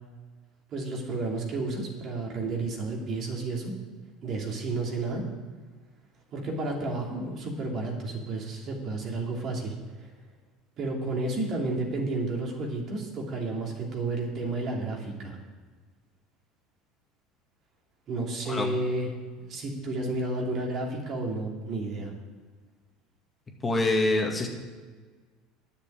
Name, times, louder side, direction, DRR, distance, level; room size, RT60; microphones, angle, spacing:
voice 1, 0.7-3.7 4.2-5.2 6.3-9.7 10.0-10.1 10.8-15.4 18.1-19.1 19.5-22.1, right 2 dB, 50° right, 0 dB, 2.9 m, -31 dB
voice 2, 18.5-18.8 23.6-24.5, left 2 dB, 20° left, 1 dB, 2.1 m, -25 dB
9.9 x 6.8 x 8.7 m, 1.4 s
supercardioid pair, 90°, 0 cm